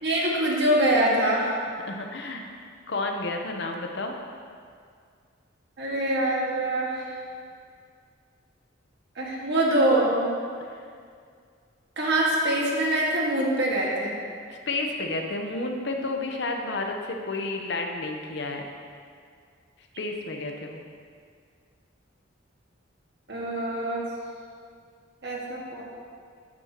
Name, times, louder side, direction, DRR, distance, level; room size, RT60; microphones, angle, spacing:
voice 1, 0.0-1.5 5.8-7.2 9.2-10.3 12.0-14.2 23.3-24.0 25.2-25.8, right 1 dB, 60° right, -4 dB, 1.7 m, -24 dB
voice 2, 1.9-2.4 2.9-4.1 10.7-10.9 14.5-18.6 20.0-20.8, left 2 dB, 60° left, 3 dB, 0.8 m, -31 dB
9.4 x 8.9 x 2.9 m, 2.1 s
head